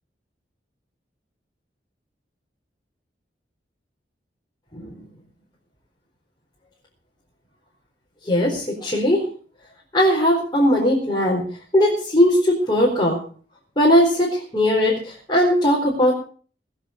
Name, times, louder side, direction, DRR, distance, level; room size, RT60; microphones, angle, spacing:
voice 1, 8.3-9.2 9.9-11.4 11.7-13.2 13.8-16.1, equal, 25° left, -4 dB, 4.4 m, -19 dB
20.5 x 8.3 x 6.5 m, 0.43 s
head